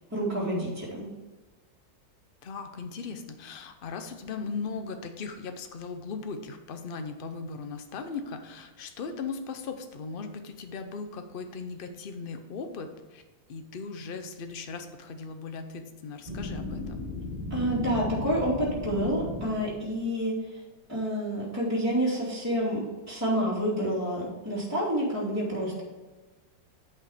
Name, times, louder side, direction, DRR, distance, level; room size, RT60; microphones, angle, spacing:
voice 1, 0.1-1.1 17.5-20.6 20.9-25.8, equal, 10° right, -7 dB, 2.6 m, -28 dB
voice 2, 2.4-13.2 13.5-17.0, left 4 dB, 75° left, 7 dB, 0.5 m, -38 dB
sound 1, 16.3-20.0, left 2 dB, 25° right, 1.1 m, -35 dB
9.5 x 5.5 x 5.0 m, 1.2 s
omnidirectional pair, 2.0 m